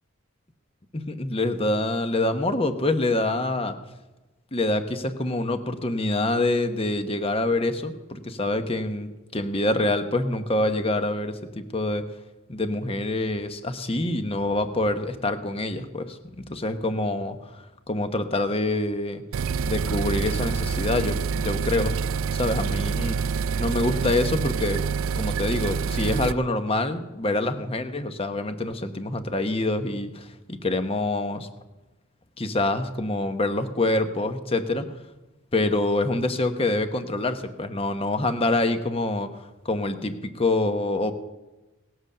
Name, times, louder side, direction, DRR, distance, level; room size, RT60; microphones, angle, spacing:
voice 1, 0.9-3.8 4.5-12.0 12.5-16.2 16.5-19.2 19.6-21.9 22.3-23.2 23.6-24.8 25.1-31.5 32.4-34.8 35.5-41.1, left 2 dB, 30° left, 8 dB, 1.0 m, -26 dB
sound 1, 19.3-26.3, right 5 dB, 75° right, 0.4 m, -27 dB
18.5 x 8.0 x 6.7 m, 1.1 s
head